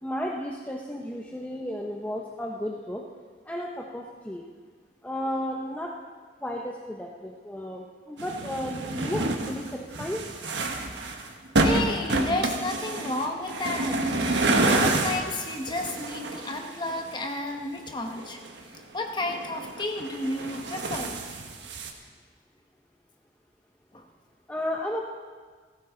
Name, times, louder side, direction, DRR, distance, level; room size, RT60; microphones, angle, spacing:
voice 1, 0.0-3.1 3.5-4.5 5.0-5.9 6.4-10.2 24.5-25.0, equal, 10° left, -1 dB, 0.8 m, -33 dB
sound 1, 8.2-17.3 17.9-18.8 19.1-21.9, right 2 dB, 90° right, 1.4 m, -28 dB
voice 2, 11.6-18.4 18.9-21.2 23.9-24.0, left 2 dB, 25° left, 3 dB, 1.4 m, -32 dB
17.0 x 15.0 x 3.9 m, 1.5 s
head